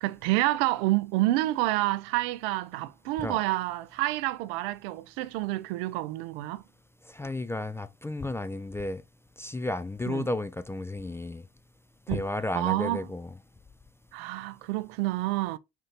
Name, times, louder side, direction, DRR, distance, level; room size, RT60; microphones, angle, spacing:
voice 1, 0.0-6.6 10.1-10.3 12.1-12.2 12.5-13.0 14.1-15.6, right 17 dB, 75° right, 0.5 m, -28 dB
voice 2, 7.1-9.0 9.4-11.5 12.1-13.4, left 2 dB, 10° left, 0.3 m, -33 dB
4.4 x 2.6 x 3.9 m
hypercardioid pair, 70°, 30 cm